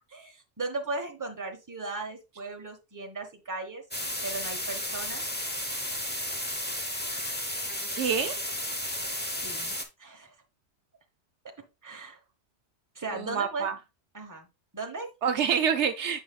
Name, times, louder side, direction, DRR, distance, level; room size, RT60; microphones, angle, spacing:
voice 1, 0.1-3.8 4.2-5.2 9.4-10.3 11.8-12.2 12.9-13.7 14.1-14.5 14.7-15.1, right 3 dB, 15° right, 1.1 m, -37 dB
sound 1, 3.9-9.8, left 1 dB, 10° left, 0.8 m, -33 dB
voice 2, 8.0-8.3 13.1-13.7 15.2-16.2, right 7 dB, 75° right, 0.9 m, -27 dB
7.6 x 5.6 x 2.3 m
omnidirectional pair, 1.2 m